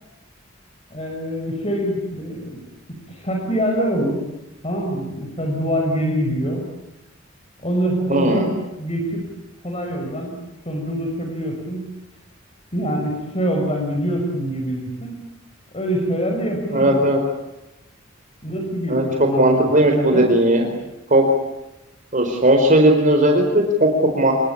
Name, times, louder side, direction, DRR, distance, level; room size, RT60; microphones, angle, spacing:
voice 1, 0.9-2.6 3.1-4.2 4.6-6.7 7.6-9.3 9.6-11.9 12.7-15.2 15.7-17.0 18.4-20.3, equal, 30° left, 2 dB, 5.8 m, -25 dB
voice 2, 8.1-8.5 16.7-17.2 18.9-20.7 21.1-21.2 22.1-24.3, right 1 dB, 40° right, 3 dB, 4.5 m, -17 dB
28.0 x 23.5 x 8.7 m, 0.96 s
head